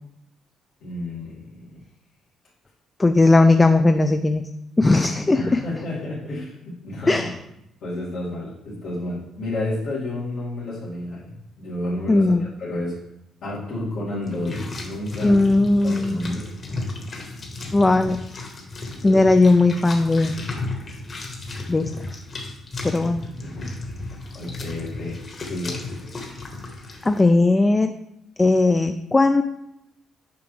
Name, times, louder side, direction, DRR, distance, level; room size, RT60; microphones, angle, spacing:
voice 1, 0.8-1.8 5.3-7.3 7.8-12.9 13.4-15.4 15.8-16.4 19.0-19.3 23.0-23.7 24.3-25.2 25.4-26.3, left 1 dB, 80° left, -10 dB, 2.3 m, -31 dB
voice 2, 3.0-4.4 4.8-5.6 7.1-7.3 12.1-12.5 15.2-16.2 17.7-18.2 19.0-20.3 21.7-22.2 22.8-23.2 27.0-27.9 28.4-29.4, left 2 dB, 20° left, 8 dB, 0.3 m, -17 dB
sound 1, 14.2-27.2, left 2 dB, 45° left, 1.4 m, -34 dB
6.8 x 5.1 x 3.3 m, 0.83 s
cardioid pair, 90°, 0 cm